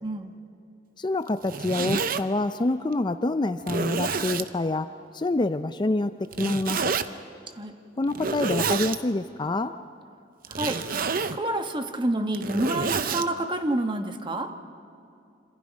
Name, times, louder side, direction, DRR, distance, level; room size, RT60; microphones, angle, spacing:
voice 1, 0.0-0.3 7.6-7.7 10.5-10.8 11.3-14.5, right 1 dB, 25° right, 6 dB, 1.3 m, -28 dB
voice 2, 1.0-4.9 5.1-6.1 6.4-6.9 8.0-9.7, left 2 dB, 25° left, 10 dB, 0.5 m, -26 dB
Zipper (clothing), 1.3-2.2 2.9-3.0 3.6-4.5 6.3-7.1 8.1-9.0 10.4-11.4 12.2-13.3, right 5 dB, 50° right, 0.7 m, -28 dB
27.0 x 26.5 x 5.3 m, 2.5 s
head